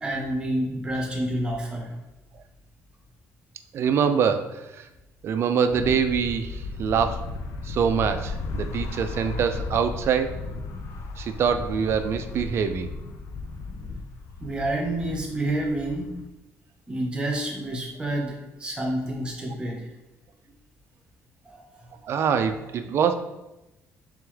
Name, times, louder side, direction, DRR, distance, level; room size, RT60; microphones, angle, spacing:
voice 1, 0.0-1.9 14.4-16.2 16.9-19.9 21.4-21.7, right 1 dB, 15° right, 0 dB, 0.8 m, -29 dB
voice 2, 3.7-4.9 5.2-7.3 7.6-10.4 11.2-12.9 22.0-23.1, right 7 dB, 50° right, 9 dB, 0.3 m, -24 dB
sound 1, 5.7-16.2, left 3 dB, 65° left, 0.4 m, -35 dB
3.4 x 3.4 x 3.2 m, 0.98 s
cardioid pair, 145°, 6 cm